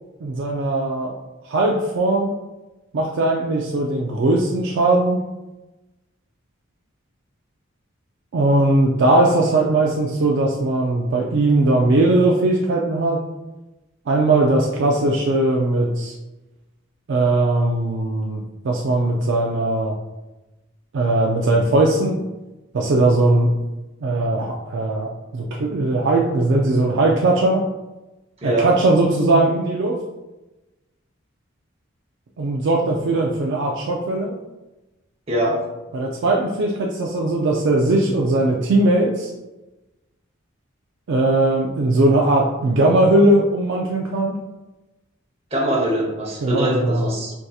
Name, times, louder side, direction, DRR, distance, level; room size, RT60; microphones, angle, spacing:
voice 1, 0.2-1.1 1.5-2.3 2.9-5.2 8.3-13.2 14.1-16.1 17.1-20.0 20.9-22.2 22.7-23.5 24.0-27.6 28.4-30.0 32.4-34.4 35.9-39.3 41.1-44.4 46.4-47.1, right 2 dB, 60° right, -1 dB, 0.4 m, -19 dB
voice 2, 35.3-35.6 45.5-47.3, right 1 dB, 30° right, -3 dB, 0.8 m, -22 dB
4.6 x 2.7 x 2.3 m, 1.1 s
head